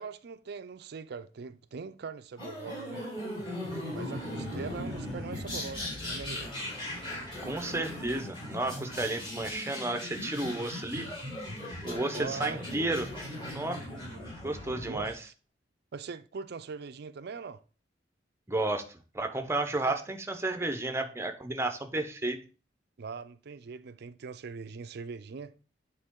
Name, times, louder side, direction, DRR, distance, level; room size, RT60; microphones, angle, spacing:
voice 1, 0.0-3.1 3.9-6.6 11.9-12.6 14.1-14.3 14.6-15.2 15.9-17.6 19.9-20.0 23.0-25.5, right 5 dB, 60° right, 0.4 m, -42 dB
sound 1, 2.4-15.1, left 1 dB, 30° left, 3.2 m, -38 dB
voice 2, 7.4-11.1 11.8-13.1 13.4-13.8 14.4-15.1 18.5-22.4, right 2 dB, 15° right, 0.7 m, -32 dB
8.9 x 3.8 x 3.7 m
head